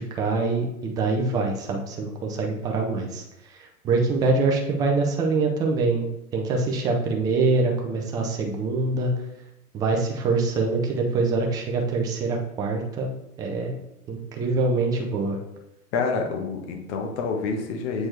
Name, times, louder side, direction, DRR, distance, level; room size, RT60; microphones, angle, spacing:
voice 1, 0.0-3.2 3.8-6.1 6.3-9.1 9.7-13.1 13.4-13.8 14.1-15.4, right 3 dB, 10° right, 2 dB, 0.3 m, -24 dB
voice 2, 15.9-18.1, left 4 dB, 50° left, 3 dB, 1.3 m, -28 dB
7.6 x 4.3 x 3.2 m, 0.87 s
hypercardioid pair, 105°, 46 cm